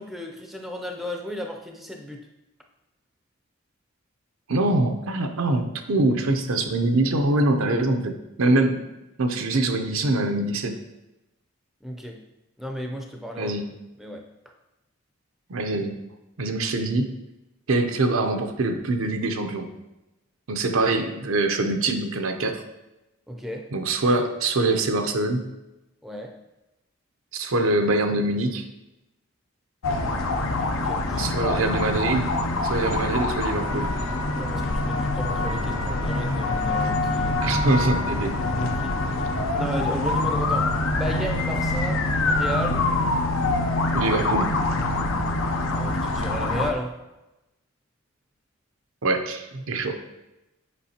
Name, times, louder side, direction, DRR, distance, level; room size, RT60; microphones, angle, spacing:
voice 1, 0.0-2.3 7.6-7.9 11.8-12.2 12.6-13.5 14.0-14.2 23.3-23.7 26.0-26.3 30.7-31.4 34.3-37.4 38.3-39.0 39.5-42.8 44.0-44.1 45.7-47.0, equal, ahead, 2 dB, 0.5 m, -34 dB
voice 2, 4.5-8.8 9.2-10.7 13.4-13.7 15.5-15.9 16.4-17.1 17.7-19.7 20.5-22.6 23.7-25.4 27.3-28.7 31.1-32.3 32.6-33.9 37.4-38.3 43.9-44.5 49.0-50.0, right 2 dB, 75° right, 6 dB, 0.7 m, -24 dB
sound 1, 29.8-46.7, left 2 dB, 70° left, 0.6 m, -25 dB
8.3 x 5.0 x 2.8 m, 0.98 s
head